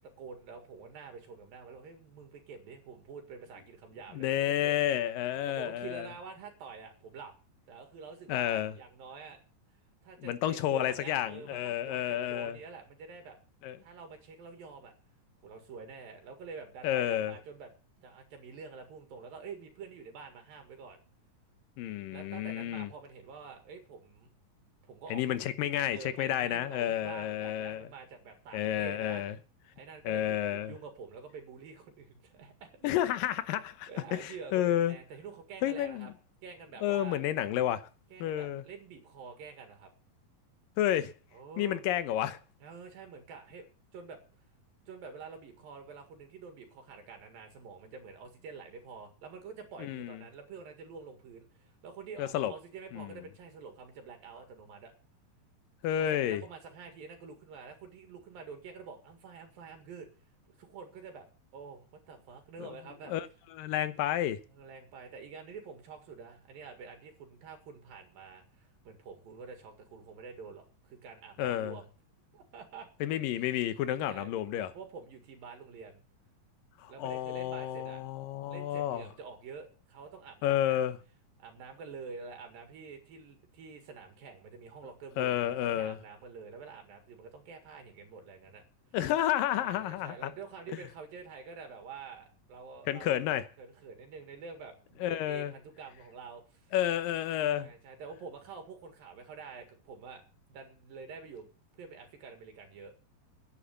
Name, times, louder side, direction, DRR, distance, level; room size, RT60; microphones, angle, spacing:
voice 1, 0.0-4.8 5.5-7.3 7.7-9.4 10.0-13.4 13.8-14.9 15.4-17.7 18.0-21.0 22.1-24.3 24.8-25.5 25.8-29.3 29.8-32.9 33.9-36.1 36.4-37.2 38.1-39.9 41.3-41.8 42.6-44.2 44.9-54.9 56.0-60.1 60.6-61.3 61.5-63.2 64.5-71.9 72.3-72.9 74.0-74.3 74.7-76.0 76.9-78.0 78.5-80.9 81.4-88.6 89.6-93.2 93.6-96.7 97.6-100.2 100.5-101.5 101.7-102.9, right 5 dB, 85° right, 3.7 m, -47 dB
voice 2, 4.1-6.1 8.3-8.8 10.2-12.6 13.6-13.8 16.8-17.3 21.8-22.9 25.1-27.9 28.5-29.4 30.0-30.7 32.8-35.0 35.6-36.1 36.8-37.9 38.2-38.6 40.8-41.1 41.6-42.4 49.8-50.2 52.2-52.5 52.9-53.2 55.8-56.4 62.6-62.7 63.1-63.3 63.6-64.4 71.4-71.8 73.0-74.7 76.8-79.0 80.4-81.0 85.2-86.0 88.9-90.3 92.9-93.5 95.0-95.5 96.7-97.7, left 12 dB, 80° left, 2.6 m, -31 dB
10.5 x 9.7 x 7.1 m
omnidirectional pair, 4.0 m